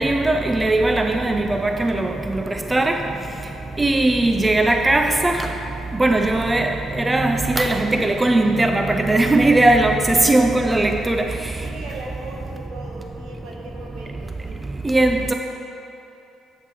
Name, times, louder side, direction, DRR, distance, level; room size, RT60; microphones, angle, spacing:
voice 1, 0.0-2.4 2.7-3.0 3.8-5.5 6.0-11.4 14.8-15.3, right 2 dB, 15° right, 5 dB, 0.4 m, -19 dB
voice 2, 11.6-15.0, right 2 dB, 75° right, -1 dB, 1.5 m, -38 dB
7.6 x 7.3 x 5.0 m, 2.8 s
cardioid pair, 105°, 0 cm